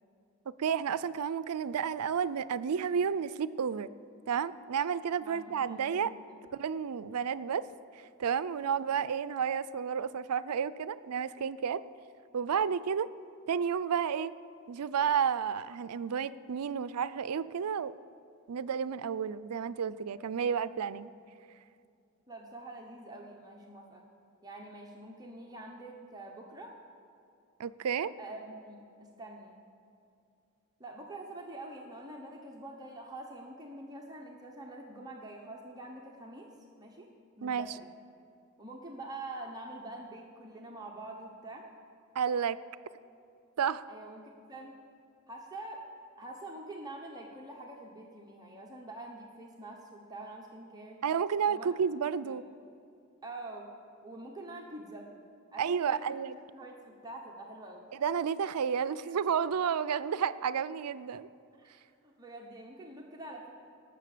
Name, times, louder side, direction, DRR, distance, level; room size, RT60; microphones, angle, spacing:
voice 1, 0.6-3.9 4.3-6.1 6.5-7.6 8.2-11.8 12.3-13.1 13.5-14.3 14.7-17.9 18.5-21.1 27.6-28.1 37.4-37.7 42.2-42.6 43.6-43.8 51.0-52.4 55.6-56.4 57.9-61.3, right 7 dB, 85° right, 16 dB, 0.4 m, -31 dB
voice 2, 5.2-6.4 22.3-24.0 24.4-26.7 28.2-28.8 29.2-29.6 30.8-36.5 36.8-37.1 37.4-37.9 38.6-41.7 43.9-44.8 45.3-45.8 46.2-51.0 51.5-52.4 53.2-53.7 54.0-55.1 55.5-56.1 56.5-57.9 61.6-63.5, right 2 dB, 15° right, 0 dB, 1.0 m, -46 dB
19.0 x 6.9 x 6.7 m, 2.5 s
head